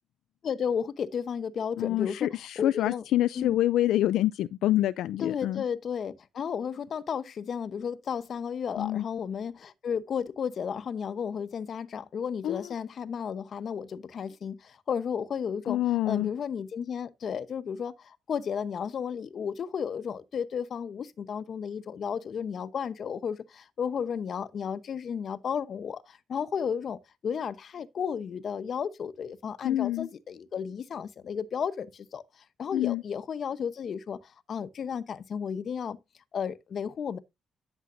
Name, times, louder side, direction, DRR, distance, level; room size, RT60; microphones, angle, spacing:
voice 1, 0.4-3.0 3.3-3.6 5.2-15.8 16.0-36.0 36.3-37.2, left 7 dB, 55° left, 0.9 m, -33 dB
voice 2, 1.8-5.6 8.8-9.0 12.4-12.7 15.7-16.3 29.6-30.1 32.7-33.0, left 14 dB, 80° left, 0.4 m, -26 dB
12.0 x 7.2 x 2.6 m
cardioid pair, 90°, 0 cm